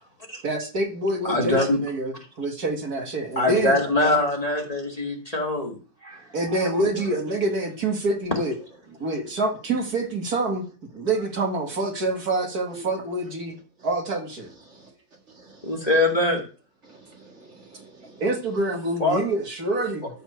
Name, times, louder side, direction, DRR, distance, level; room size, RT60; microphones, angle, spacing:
voice 1, 0.4-3.8 6.3-8.5 8.9-10.7 10.9-13.5 13.8-14.5 18.2-20.1, right 2 dB, 65° right, 2.5 m, -26 dB
voice 2, 1.2-1.8 3.4-5.8 6.0-6.2 6.8-6.9 15.6-16.4 19.0-19.2, left 2 dB, 20° left, 2.3 m, -23 dB
voice 3, 15.3-15.9 16.8-18.2, right 3 dB, 45° right, 2.3 m, -47 dB
13.0 x 4.5 x 8.1 m
omnidirectional pair, 1.8 m